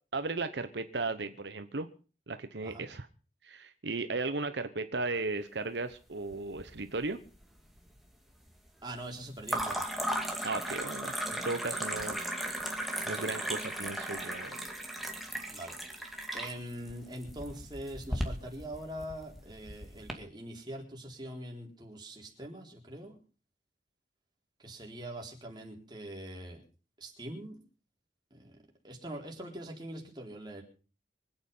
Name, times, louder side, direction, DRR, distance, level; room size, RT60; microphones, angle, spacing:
voice 1, 0.1-1.9 2.3-3.1 3.4-7.2 10.4-12.2 13.1-14.6, right 3 dB, 75° right, 9 dB, 1.0 m, -36 dB
sound 1, 6.3-7.1 7.3-8.0 9.4-20.1, right 1 dB, ahead, 2.4 m, -36 dB
voice 2, 8.8-9.8 15.5-23.2 24.6-26.6 27.0-27.6 28.3-28.6 28.8-30.6, right 1 dB, 25° right, 0 dB, 4.1 m, -43 dB
24.5 x 9.0 x 5.6 m, 0.38 s
head